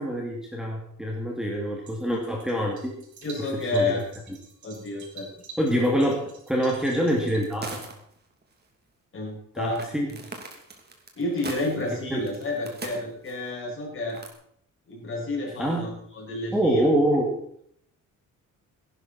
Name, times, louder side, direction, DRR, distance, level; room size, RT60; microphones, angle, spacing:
voice 1, 0.0-2.9 3.6-4.0 5.6-7.8 9.5-10.1 12.1-12.2 15.6-15.9 16.5-17.3, equal, ahead, -2 dB, 2.4 m, -25 dB
sound 1, 1.9-7.4, right 4 dB, 60° right, 4.5 m, -48 dB
voice 2, 3.2-4.0 4.6-5.3 9.1-9.8 10.1-10.2 11.2-14.2 14.9-16.9, left 2 dB, 40° left, -1 dB, 6.2 m, -30 dB
sound 2, 7.4-8.2 8.4-8.5 9.7-13.5 14.1-14.3, right 3 dB, 30° right, 2.8 m, -40 dB
17.0 x 11.5 x 4.3 m, 0.66 s
cardioid pair, 145°, 33 cm